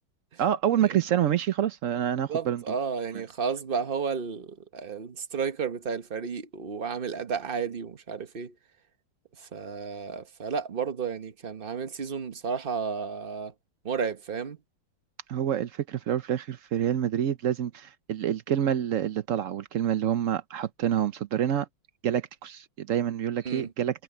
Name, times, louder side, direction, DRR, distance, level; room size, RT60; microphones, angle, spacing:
voice 1, 0.4-2.6 15.3-21.7 22.0-24.0, right 10 dB, 85° right, 0.6 m, -27 dB
voice 2, 2.3-8.5 9.4-13.5 13.8-14.6 23.4-23.6, right 6 dB, 35° right, 1.0 m, -32 dB
omnidirectional pair, 2.4 m